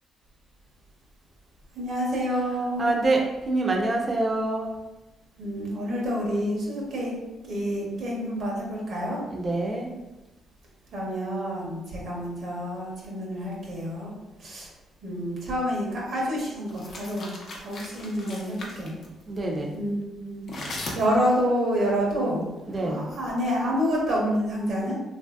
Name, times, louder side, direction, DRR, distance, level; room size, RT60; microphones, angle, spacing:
voice 1, 1.7-2.9 5.4-7.2 7.4-9.2 10.9-14.1 14.4-14.7 15.0-18.9 19.7-20.4 20.9-22.5 22.8-24.9, equal, 70° right, -3 dB, 1.0 m, -28 dB
voice 2, 2.8-4.7 9.3-9.9 19.3-19.8 22.7-23.1, right 2 dB, 35° right, 0 dB, 0.6 m, -26 dB
sound 1, 16.7-19.1 20.5-21.4, left 2 dB, 55° left, 0.7 m, -38 dB
3.0 x 2.6 x 2.3 m, 1.1 s
cardioid pair, 90°, 0 cm